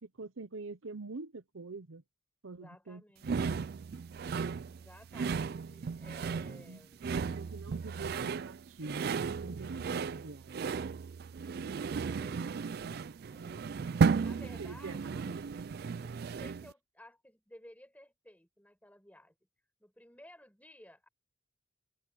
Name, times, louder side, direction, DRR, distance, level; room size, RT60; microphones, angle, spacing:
voice 1, 0.0-2.0 2.4-3.7 6.5-6.9 7.2-11.0 11.5-11.8 12.3-12.5 12.8-13.1 14.1-15.5, right 3 dB, 85° right, 0.8 m, -45 dB
voice 2, 2.5-3.3 4.6-7.1 11.9-12.9 13.3-13.9 14.2-15.3 16.0-19.4 19.8-21.1, left 1 dB, 10° left, 5.1 m, -56 dB
sound 1, 3.2-16.7, right 5 dB, 50° right, 0.3 m, -34 dB
open air
head